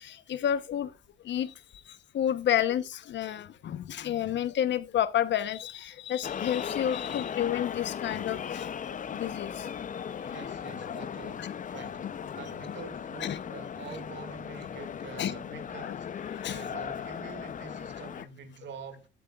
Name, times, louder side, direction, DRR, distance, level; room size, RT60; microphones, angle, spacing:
voice 1, 0.3-0.9 1.3-1.5 2.1-8.6 9.1-9.5 10.8-10.9 11.4-11.5 12.0-12.1 13.2-13.4 15.2-15.3 15.8-16.0 16.4-16.6, left 10 dB, 65° left, 0.9 m, -30 dB
sound 1, 6.2-18.2, left 8 dB, 40° left, 0.6 m, -37 dB
voice 2, 10.3-19.1, right 5 dB, 65° right, 2.1 m, -46 dB
14.0 x 8.6 x 2.4 m
cardioid pair, 90°, 20 cm